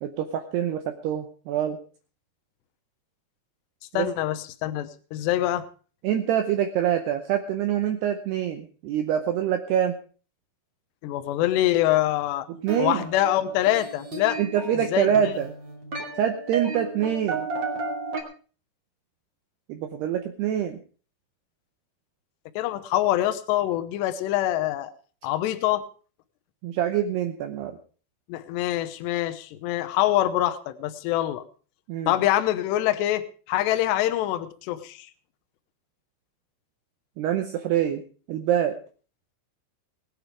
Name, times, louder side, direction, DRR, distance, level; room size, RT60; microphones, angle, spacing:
voice 1, 0.0-1.8 3.9-4.1 6.0-10.0 12.5-13.0 14.4-15.5 16.2-17.5 19.7-20.8 26.6-27.8 31.9-32.2 37.2-38.8, right 10 dB, 75° right, 6 dB, 2.6 m, -25 dB
voice 2, 3.9-5.7 11.0-12.5 12.8-14.4 14.9-15.1 22.6-24.9 25.2-25.9 28.3-31.4 32.1-35.1, left 13 dB, 75° left, 10 dB, 2.8 m, -25 dB
sound 1, 12.7-18.2, right 4 dB, 30° right, 2.4 m, -34 dB
19.5 x 9.1 x 5.0 m, 0.39 s
omnidirectional pair, 5.5 m